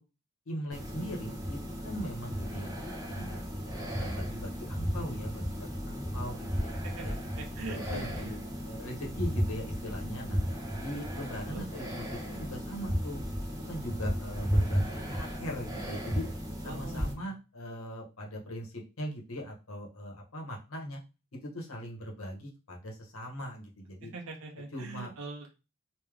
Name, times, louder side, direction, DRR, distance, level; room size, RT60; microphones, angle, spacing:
voice 1, 0.5-2.8 3.0-3.5 3.9-6.7 7.0-7.2 7.6-10.4 10.8-13.2 13.6-16.3 16.6-21.0 21.3-24.1 24.7-25.1, equal, 80° left, 0 dB, 1.2 m, -40 dB
sound 1, 0.7-17.1, equal, 15° right, 1.0 m, -34 dB
voice 2, 6.7-7.1 7.4-8.4 11.4-11.7 16.6-17.3 24.0-25.6, right 3 dB, 80° right, 1 dB, 0.7 m, -42 dB
3.5 x 2.9 x 3.4 m, 0.29 s
head